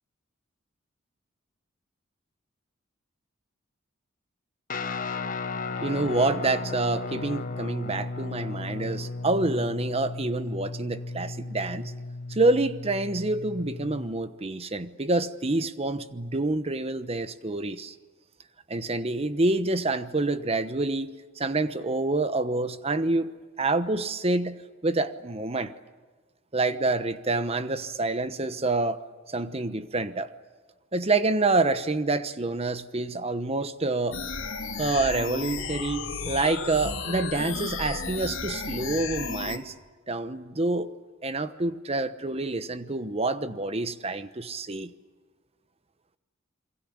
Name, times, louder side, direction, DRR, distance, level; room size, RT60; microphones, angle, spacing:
Guitar, 4.7-14.1, left 3 dB, 45° left, 1.2 m, -35 dB
voice 1, 5.8-11.9 12.3-17.9 18.7-21.1 21.4-25.7 26.5-29.0 29.3-30.3 30.9-34.2 34.8-39.7 40.1-40.9 41.2-44.9, right 2 dB, 30° right, 1.0 m, -27 dB
sound 1, 34.1-39.6, left 4 dB, 80° left, 2.8 m, -33 dB
28.0 x 22.5 x 8.7 m
head